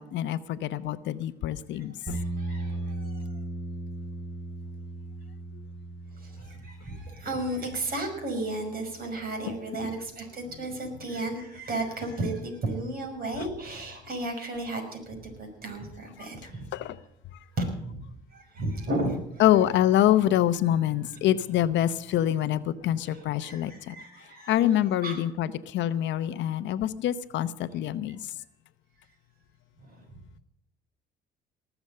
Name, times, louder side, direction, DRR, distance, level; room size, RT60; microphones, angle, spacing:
voice 1, 0.0-2.2 16.7-16.9 19.4-23.9 24.5-28.2, left 12 dB, 70° left, 14 dB, 0.8 m, -25 dB
voice 2, 1.7-3.2 6.2-16.7 17.6-18.0 18.3-19.5 21.1-21.2 23.0-25.2 29.8-30.0, right 2 dB, 50° right, 4 dB, 5.7 m, -34 dB
sound 1, 2.1-10.2, right 2 dB, 25° right, 4.2 m, -38 dB
19.0 x 7.1 x 7.7 m, 0.80 s
supercardioid pair, 80°, 20 cm